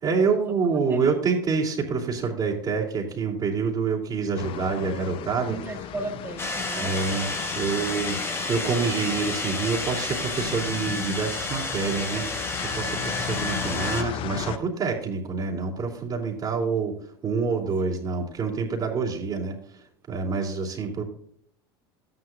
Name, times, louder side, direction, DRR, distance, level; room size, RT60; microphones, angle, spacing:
voice 1, 0.0-5.6 6.8-7.3 7.5-17.0 17.2-19.8 20.1-21.0, right 5 dB, 35° right, -5 dB, 3.1 m, -27 dB
sound 1, 4.4-14.6, left 11 dB, 45° left, 0.5 m, -36 dB
voice 2, 5.5-7.0 17.8-18.0, right 2 dB, 15° right, 3 dB, 1.7 m, -35 dB
sound 2, 6.4-14.0, left 2 dB, 20° left, 1.7 m, -31 dB
13.0 x 9.9 x 2.5 m, 0.65 s
hypercardioid pair, 95°, 13 cm